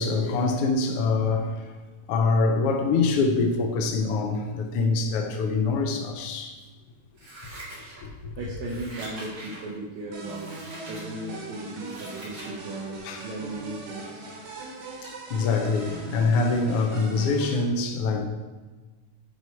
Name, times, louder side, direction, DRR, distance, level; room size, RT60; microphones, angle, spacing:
voice 1, 0.0-1.6 2.1-6.6 8.0-8.3 13.0-13.3 15.0-18.3, left 3 dB, 85° left, 1.3 m, -25 dB
Scissors, 7.1-8.2 8.6-9.7 10.2-11.0 11.5-12.5 12.9-13.0, right 1 dB, 40° right, 3.9 m, -43 dB
voice 2, 8.4-10.5 10.9-14.3, right 2 dB, 65° right, 2.2 m, -37 dB
sound 1, 10.1-17.6, right 3 dB, 90° right, 3.2 m, -39 dB
11.0 x 4.7 x 4.5 m
omnidirectional pair, 3.8 m